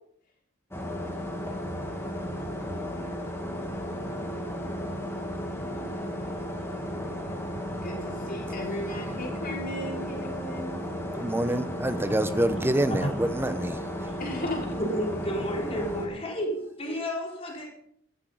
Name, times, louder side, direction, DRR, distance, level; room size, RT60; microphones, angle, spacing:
sound 1, 0.7-16.1, equal, 10° left, 2.7 m, -34 dB
voice 1, 7.8-10.8 14.2-14.7, left 1 dB, 45° left, 5.3 m, -35 dB
voice 2, 11.2-13.8, right 1 dB, 10° right, 0.9 m, -26 dB
voice 3, 14.8-17.7, equal, 30° left, 4.4 m, -31 dB
14.5 x 12.0 x 5.5 m
head